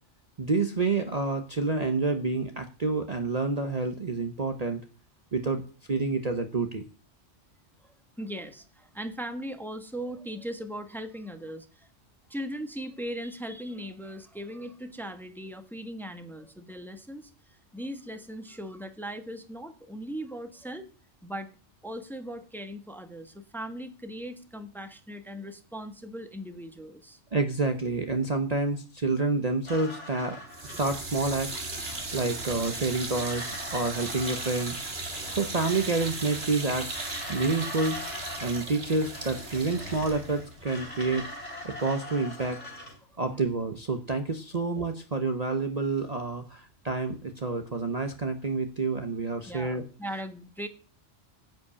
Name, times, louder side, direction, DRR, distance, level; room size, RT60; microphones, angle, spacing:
voice 1, 0.4-4.8 5.3-6.8 27.3-31.6 32.1-34.8 35.3-36.9 37.3-38.0 38.4-41.3 41.6-42.6 43.2-49.8, right 3 dB, 35° right, 6 dB, 0.9 m, -28 dB
voice 2, 7.8-11.9 12.3-20.9 21.2-21.5 21.8-27.2 43.1-43.2 49.5-50.7, equal, ahead, 8 dB, 1.1 m, -39 dB
sound 1, 29.7-43.0, left 1 dB, 75° left, 3.4 m, -42 dB
sound 2, 30.5-41.6, right 2 dB, 55° right, 2.2 m, -37 dB
10.5 x 5.2 x 8.3 m, 0.37 s
omnidirectional pair, 1.2 m